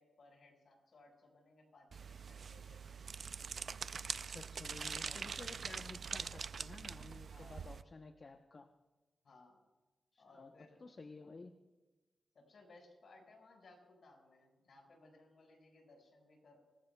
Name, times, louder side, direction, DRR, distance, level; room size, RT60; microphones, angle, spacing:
voice 1, 0.0-3.0 4.8-5.7 7.3-7.8 9.2-9.6 10.2-10.8 12.3-16.6, left 2 dB, 60° left, 1 dB, 5.2 m, -63 dB
sound 1, 1.9-7.8, right 6 dB, 55° right, 0.4 m, -44 dB
voice 2, 4.3-8.7 10.1-10.5 10.8-11.5, left 3 dB, 40° left, 5 dB, 0.8 m, -53 dB
26.0 x 20.0 x 2.3 m, 1.2 s
wide cardioid pair, 125°, 0 cm